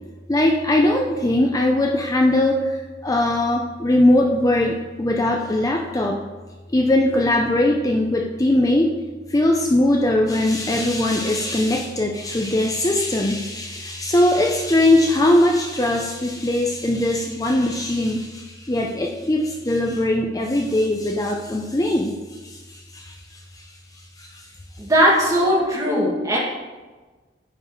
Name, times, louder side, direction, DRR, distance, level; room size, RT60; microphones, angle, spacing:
voice 1, 0.3-2.8 3.0-6.2 6.7-8.9 9.3-23.7 24.2-24.5, left 1 dB, 20° left, 1 dB, 0.5 m, -20 dB
voice 2, 24.8-26.4, equal, 20° right, -5 dB, 2.0 m, -18 dB
14.5 x 5.2 x 3.1 m, 1.3 s
head